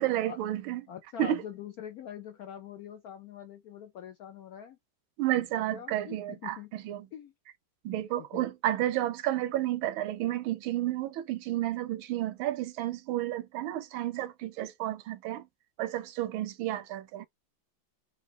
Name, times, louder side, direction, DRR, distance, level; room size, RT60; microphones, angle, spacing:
voice 1, 0.0-0.8 1.2-1.4 5.2-7.1 7.8-15.5 15.8-17.3, right 13 dB, 80° right, 1.4 m, -31 dB
voice 2, 0.9-4.8 5.4-6.7 7.1-7.3 7.9-8.5, left 9 dB, 80° left, 0.8 m, -44 dB
4.1 x 2.6 x 3.1 m
omnidirectional pair, 2.2 m